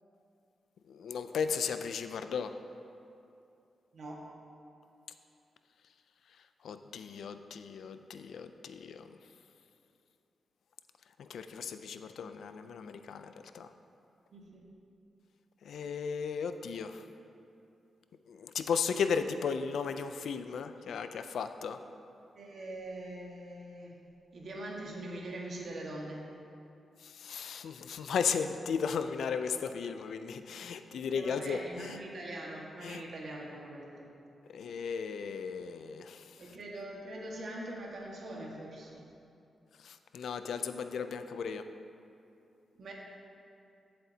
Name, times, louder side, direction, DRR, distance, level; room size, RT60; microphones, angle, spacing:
voice 1, 0.9-2.5 6.6-9.1 11.2-13.7 15.6-17.0 18.3-21.8 27.0-32.0 32.8-33.0 34.5-36.2 39.8-41.6, left 6 dB, 80° left, 9 dB, 0.4 m, -35 dB
voice 2, 3.9-4.3 14.3-14.6 22.3-24.0 24.3-26.3 31.1-34.0 36.4-39.1 42.8-42.9, right 1 dB, 55° right, -2 dB, 1.7 m, -42 dB
15.0 x 7.7 x 2.9 m, 2.6 s
wide cardioid pair, 130°, 0 cm